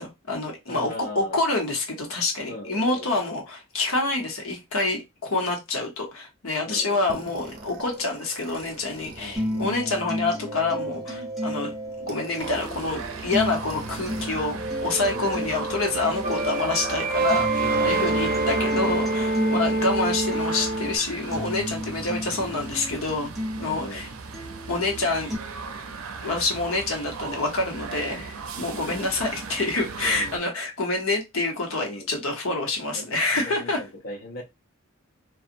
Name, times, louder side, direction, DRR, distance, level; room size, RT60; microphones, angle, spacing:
voice 1, 0.0-11.7 12.0-23.3 23.6-24.1 24.7-25.3 26.2-33.8, left 3 dB, 90° left, 0.9 m, -27 dB
voice 2, 0.7-1.4 2.5-3.4 6.7-7.3 9.2-9.8 15.1-15.6 17.6-18.3 19.4-19.9 23.6-24.1 28.1-29.3 30.0-30.5 31.8-32.1 32.9-33.1 33.5-34.4, left 1 dB, 45° left, 0.6 m, -40 dB
sound 1, 7.1-14.3 14.5-21.0, right 2 dB, 45° right, 0.6 m, -29 dB
sound 2, 9.4-25.4, equal, ahead, 0.7 m, -35 dB
sound 3, 12.4-30.4, right 5 dB, 90° right, 0.5 m, -38 dB
2.8 x 2.3 x 2.5 m
head